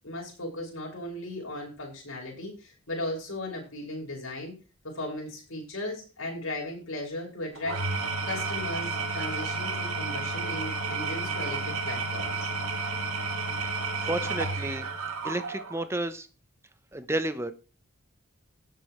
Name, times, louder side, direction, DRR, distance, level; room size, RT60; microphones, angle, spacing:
voice 1, 0.0-4.5 4.8-7.8 8.2-12.5, left 1 dB, 70° left, -1 dB, 6.1 m, -36 dB
Engine / Tools, 7.6-15.9, right 3 dB, 85° right, 1.9 m, -31 dB
voice 2, 14.0-14.9 15.2-16.3 16.9-17.5, right 1 dB, 10° right, 11 dB, 0.8 m, -31 dB
17.0 x 7.6 x 3.2 m, 0.33 s
head